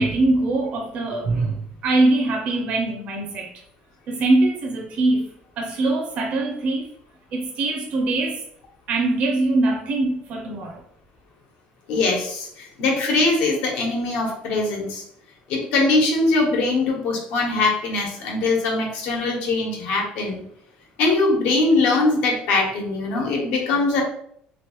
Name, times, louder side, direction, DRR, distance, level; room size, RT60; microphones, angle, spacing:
voice 1, 0.0-3.5 4.1-5.3 5.6-6.9 7.3-8.4 8.9-10.8, right 2 dB, 45° right, 0.4 m, -22 dB
voice 2, 11.9-15.0 15.5-20.4 21.0-24.0, left 3 dB, 80° left, 1.1 m, -22 dB
3.1 x 2.9 x 3.0 m
cardioid pair, 170°, 3 cm